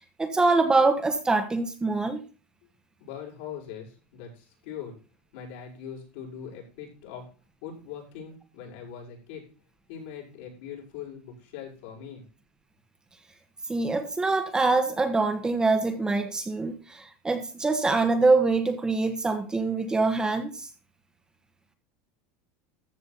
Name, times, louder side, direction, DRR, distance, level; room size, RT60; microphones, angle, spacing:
voice 1, 0.2-2.2 13.7-20.7, right 3 dB, 10° right, 6 dB, 1.4 m, -24 dB
voice 2, 3.0-4.9 5.3-7.3 7.6-9.5 9.9-12.2, left 8 dB, 75° left, -3 dB, 6.1 m, -41 dB
14.0 x 6.5 x 4.1 m, 0.35 s
supercardioid pair, 140°, 6 cm